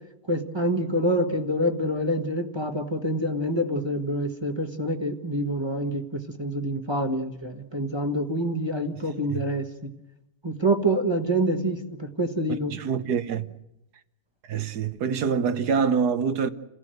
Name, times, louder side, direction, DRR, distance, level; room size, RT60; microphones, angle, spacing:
voice 1, 0.3-9.9 10.4-12.7, right 1 dB, 15° right, 1.3 m, -26 dB
voice 2, 12.7-13.5 14.5-16.5, right 6 dB, 55° right, 1.4 m, -25 dB
29.0 x 16.0 x 7.9 m
omnidirectional pair, 2.4 m